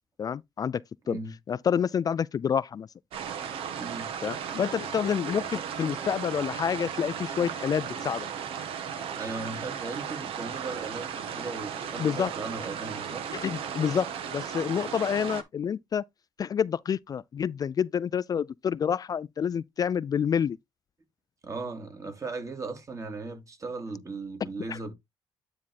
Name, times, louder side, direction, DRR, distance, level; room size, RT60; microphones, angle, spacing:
voice 1, 0.2-1.2 1.5-2.9 4.2-8.3 12.0-12.3 13.3-16.0 16.4-20.6 24.7-24.8, left 7 dB, 40° left, 0.3 m, -28 dB
sound 1, 3.1-15.4, right 8 dB, 80° right, 1.3 m, -36 dB
voice 2, 3.8-4.1 9.1-13.2 21.4-24.9, right 3 dB, 35° right, 2.6 m, -37 dB
sound 2, 4.5-7.0 7.3-8.7 8.9-9.0 9.3-9.4 9.8-9.9 11.0-12.0, left 11 dB, 75° left, 0.9 m, -47 dB
9.7 x 3.5 x 4.1 m
cardioid pair, 90°, 9 cm